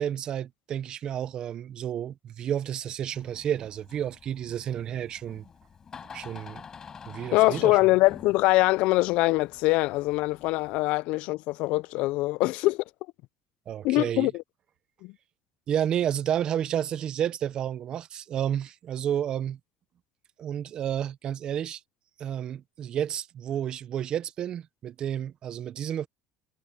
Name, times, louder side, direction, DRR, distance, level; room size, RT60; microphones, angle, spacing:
voice 1, 0.0-5.5 6.1-6.6 7.1-7.8 13.7-14.3 15.7-19.6 20.4-21.8 22.2-26.1, right 10 dB, 40° right, 0.7 m, -31 dB
Door, 3.1-10.8, left 6 dB, 30° left, 6.6 m, -48 dB
voice 2, 7.3-12.8 13.8-14.4 15.0-15.1, left 20 dB, 70° left, 0.3 m, -23 dB
cardioid pair, 135°, 2 cm